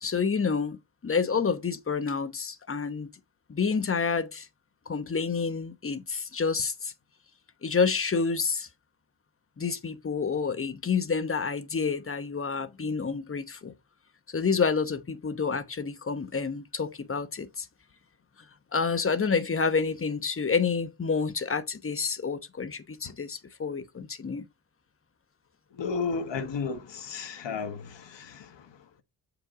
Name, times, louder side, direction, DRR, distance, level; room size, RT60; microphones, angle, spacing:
voice 1, 0.0-3.1 3.5-4.5 4.9-6.9 7.6-8.7 9.6-13.7 14.3-17.7 18.7-24.5, left 5 dB, 25° left, 0.9 m, -29 dB
voice 2, 25.7-29.0, left 5 dB, 60° left, 1.3 m, -34 dB
7.5 x 4.9 x 3.7 m
cardioid pair, 85°, 48 cm